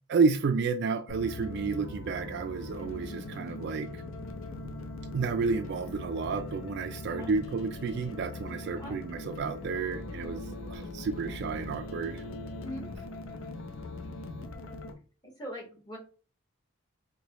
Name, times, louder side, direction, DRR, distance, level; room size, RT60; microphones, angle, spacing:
voice 1, 0.1-4.0 5.1-10.4 10.7-12.2, right 4 dB, 50° right, 0.3 m, -31 dB
sound 1, 1.1-14.9, left 2 dB, 65° left, 0.6 m, -40 dB
voice 2, 15.4-16.0, left 1 dB, 20° left, 1.4 m, -40 dB
4.7 x 2.2 x 2.9 m
head